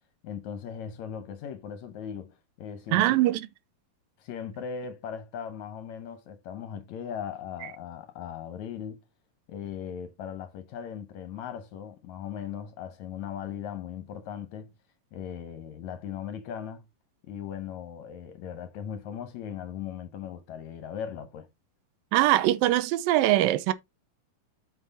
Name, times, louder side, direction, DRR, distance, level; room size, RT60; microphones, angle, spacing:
voice 1, 0.2-3.3 4.2-9.0 9.5-14.7 15.1-16.9 17.2-21.5, left 8 dB, 70° left, 1.8 m, -38 dB
voice 2, 2.9-3.5 22.1-23.7, right 15 dB, 85° right, 2.4 m, -22 dB
7.7 x 5.7 x 4.0 m
omnidirectional pair, 4.0 m